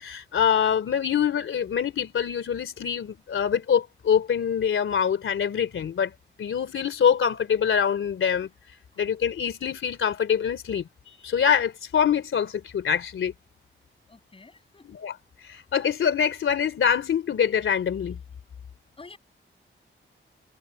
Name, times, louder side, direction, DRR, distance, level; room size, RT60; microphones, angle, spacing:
voice 1, 0.0-6.1 6.4-8.5 9.0-13.3 14.8-15.2 15.4-18.2, left 8 dB, 75° left, 3.1 m, -25 dB
voice 2, 14.1-14.9 19.0-19.2, left 3 dB, 25° left, 7.3 m, -48 dB
wide cardioid pair, 175°, 21 cm